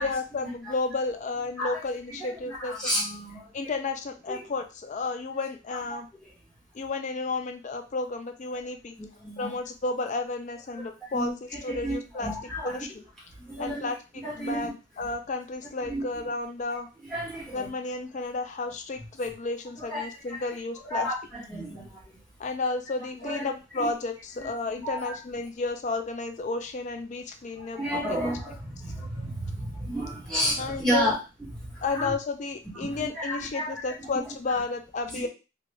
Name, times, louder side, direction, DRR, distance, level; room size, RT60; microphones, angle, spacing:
voice 1, 0.0-2.7 3.5-6.1 6.7-9.0 9.4-11.3 11.6-12.3 12.6-12.9 13.6-14.0 14.4-16.9 17.5-21.1 22.4-27.8 30.6-31.1 31.8-35.3, left 3 dB, 35° left, 6 dB, 0.3 m, -32 dB
voice 2, 2.1-3.7 4.3-4.4 5.7-5.8 6.2-6.3 9.0-9.5 10.7-12.8 13.4-13.9 14.1-14.7 15.8-16.2 17.0-17.7 19.8-20.6 20.8-22.2 23.2-23.4 23.7-23.9 24.4-24.5 24.8-25.2 27.6-32.1 32.7-34.6 35.1-35.3, equal, 5° left, -7 dB, 1.4 m, -33 dB
3.2 x 2.5 x 3.3 m, 0.30 s
head